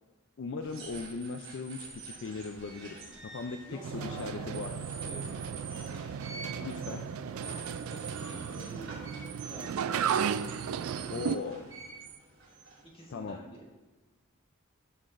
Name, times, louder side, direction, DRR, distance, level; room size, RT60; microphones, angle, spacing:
voice 1, 0.4-3.0 3.2-3.7 3.9-4.7 6.6-7.1 9.6-9.7 11.1-11.7 13.1-13.4, left 4 dB, 55° left, 6 dB, 0.4 m, -38 dB
sound 1, 0.6-13.3, right 4 dB, 60° right, 2.9 m, -46 dB
voice 2, 3.6-5.7 7.8-9.9 12.9-13.6, right 1 dB, 25° left, -3 dB, 1.7 m, -49 dB
sound 2, 3.8-11.4, right 7 dB, 75° right, 0.3 m, -35 dB
13.0 x 5.8 x 2.5 m, 1.2 s
head